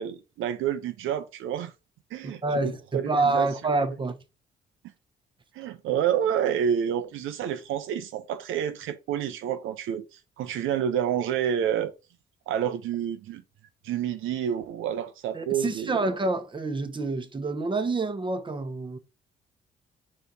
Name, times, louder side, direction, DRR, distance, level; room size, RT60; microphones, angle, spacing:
voice 1, 0.0-1.7 2.1-3.5 5.5-11.9 12.5-13.4 13.8-16.0, right 9 dB, 85° right, 0.7 m, -29 dB
voice 2, 2.2-4.2 15.3-19.0, right 3 dB, 25° right, 1.0 m, -27 dB
4.6 x 4.2 x 5.2 m
cardioid pair, 90°, 20 cm